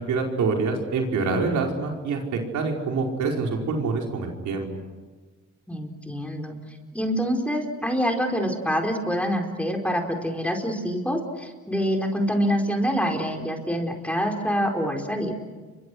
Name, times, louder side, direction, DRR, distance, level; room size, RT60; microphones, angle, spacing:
voice 1, 0.0-2.2 2.5-4.7, right 4 dB, 75° right, 1 dB, 5.0 m, -26 dB
voice 2, 5.7-6.6 6.9-15.4, equal, 5° left, 2 dB, 4.5 m, -26 dB
30.0 x 24.5 x 6.4 m, 1.3 s
cardioid pair, 90°, 30 cm